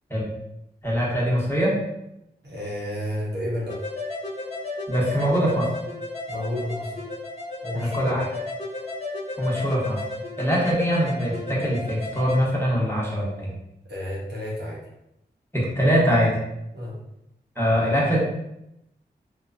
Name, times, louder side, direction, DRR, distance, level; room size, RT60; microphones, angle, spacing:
voice 1, 0.8-1.8 4.9-5.7 7.7-8.2 9.4-10.0 10.4-13.5 15.5-16.4 17.6-18.2, equal, 15° left, -5 dB, 1.0 m, -23 dB
voice 2, 2.4-3.8 6.3-7.1 7.6-8.1 13.9-14.8 16.7-17.0, left 1 dB, 75° right, -6 dB, 1.0 m, -31 dB
sound 1, 3.7-12.4, left 2 dB, 40° left, 1.0 m, -34 dB
2.9 x 2.2 x 2.6 m, 0.84 s
cardioid pair, 40°, 18 cm